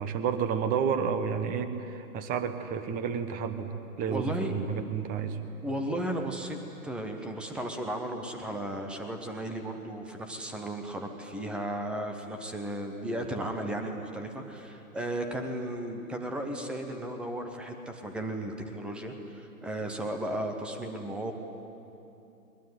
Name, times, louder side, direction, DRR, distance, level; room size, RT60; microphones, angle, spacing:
voice 1, 0.0-3.7 4.0-5.4, right 7 dB, 20° right, 10 dB, 1.2 m, -30 dB
voice 2, 4.1-4.5 5.6-6.6 6.8-21.3, right 1 dB, ahead, 5 dB, 0.5 m, -35 dB
21.5 x 21.0 x 9.5 m, 2.8 s
hypercardioid pair, 140°, 45 cm